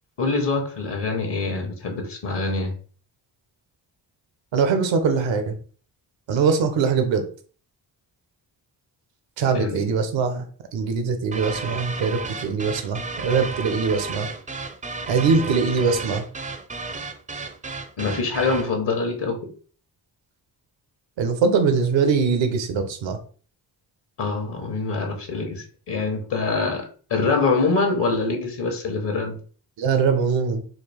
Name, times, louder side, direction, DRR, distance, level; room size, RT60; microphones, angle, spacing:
voice 1, 0.2-2.7 9.5-9.9 18.0-19.5 24.2-29.4, left 3 dB, 65° left, 4 dB, 1.0 m, -25 dB
voice 2, 4.5-5.6 6.3-7.2 9.4-10.5 10.7-14.3 15.1-16.2 21.2-23.2 29.8-30.6, right 5 dB, 85° right, 7 dB, 0.8 m, -22 dB
sound 1, 11.3-18.7, right 4 dB, 20° right, 0.4 m, -33 dB
4.0 x 2.4 x 3.3 m, 0.42 s
cardioid pair, 65°, 44 cm